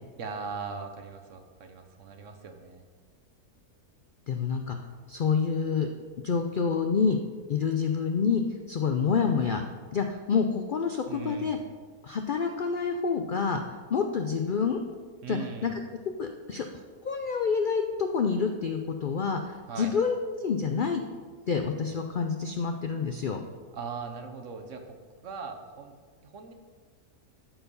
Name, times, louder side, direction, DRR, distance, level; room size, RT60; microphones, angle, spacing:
voice 1, 0.2-2.8 11.1-11.6 15.2-15.8 19.7-20.0 23.7-25.0 25.2-26.0 26.2-26.5, right 5 dB, 60° right, 5 dB, 1.2 m, -39 dB
voice 2, 4.3-4.8 5.1-5.9 6.2-7.2 7.5-8.4 8.7-9.6 9.9-11.6 12.0-14.8 15.3-15.7 16.2-21.0 21.5-23.4, left 5 dB, 90° left, 5 dB, 0.4 m, -28 dB
13.0 x 4.6 x 5.3 m, 1.5 s
omnidirectional pair, 1.6 m